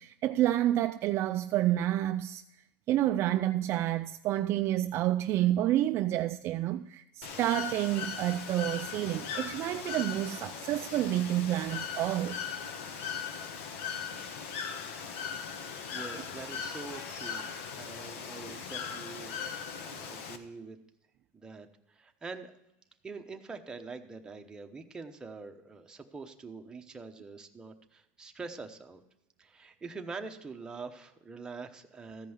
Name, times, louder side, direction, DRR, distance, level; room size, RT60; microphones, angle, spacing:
voice 1, 0.0-2.6 2.9-12.4, right 13 dB, 40° right, 0.4 m, -29 dB
Bird / Water, 7.2-20.4, left 6 dB, 75° left, 1.2 m, -39 dB
voice 2, 15.9-17.4 17.8-20.8 21.3-22.5 23.0-29.0 29.4-32.3, right 4 dB, 10° right, 0.9 m, -44 dB
14.5 x 5.4 x 7.9 m
supercardioid pair, 150°, 7 cm